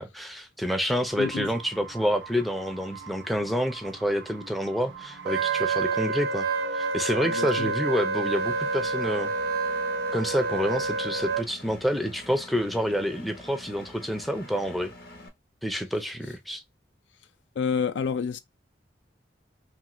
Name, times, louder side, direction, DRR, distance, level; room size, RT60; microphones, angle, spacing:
voice 1, 0.0-6.5 6.7-9.3 10.1-14.9 15.6-16.6, equal, ahead, 0.4 m, -28 dB
sound 1, 1.0-8.0, right 6 dB, 90° right, 0.7 m, -45 dB
voice 2, 1.2-1.5 7.2-7.7 17.6-18.4, left 6 dB, 90° left, 0.4 m, -29 dB
Wind instrument woodwind instrument, 5.3-11.4, right 4 dB, 60° right, 0.5 m, -28 dB
Engine, 8.3-15.3, left 2 dB, 55° left, 0.8 m, -46 dB
2.8 x 2.4 x 2.9 m
head